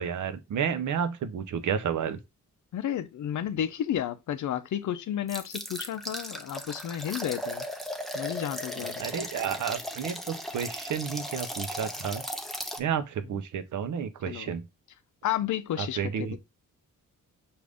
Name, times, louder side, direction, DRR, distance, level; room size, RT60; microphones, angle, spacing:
voice 1, 0.0-2.2 9.0-12.2 12.8-14.7 15.8-16.4, right 7 dB, 65° right, 0.6 m, -31 dB
voice 2, 2.7-7.6 8.1-9.1 14.3-14.5 15.2-16.4, left 10 dB, 65° left, 0.5 m, -32 dB
sound 1, 5.3-12.8, equal, ahead, 0.5 m, -37 dB
5.0 x 2.6 x 3.4 m
cardioid pair, 100°, 33 cm